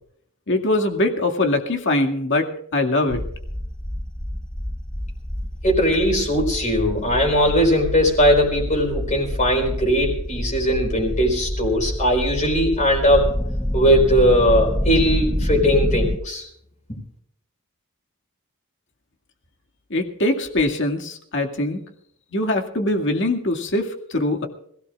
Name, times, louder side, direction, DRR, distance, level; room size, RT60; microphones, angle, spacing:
voice 1, 0.5-3.2 19.9-21.8 22.3-24.5, left 2 dB, 55° left, 3 dB, 2.2 m, -22 dB
sound 1, 3.1-16.2, left 1 dB, 5° left, 0.5 m, -27 dB
voice 2, 5.6-13.3 13.7-16.5, equal, 35° left, -1 dB, 4.5 m, -19 dB
26.5 x 17.0 x 2.5 m, 0.69 s
head